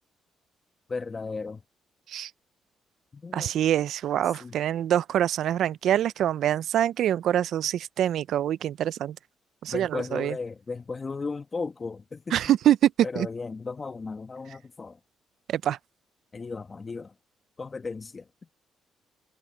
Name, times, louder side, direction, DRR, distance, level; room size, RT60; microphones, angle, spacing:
voice 1, 0.9-1.6 3.1-3.5 4.4-4.6 9.7-12.4 13.0-15.0 16.3-17.1 17.6-18.5, left 4 dB, 30° left, 1.6 m, -35 dB
voice 2, 3.3-9.2 9.6-10.3 12.3-13.3 15.5-15.8, right 11 dB, 75° right, 0.4 m, -25 dB
cardioid pair, 90°, 0 cm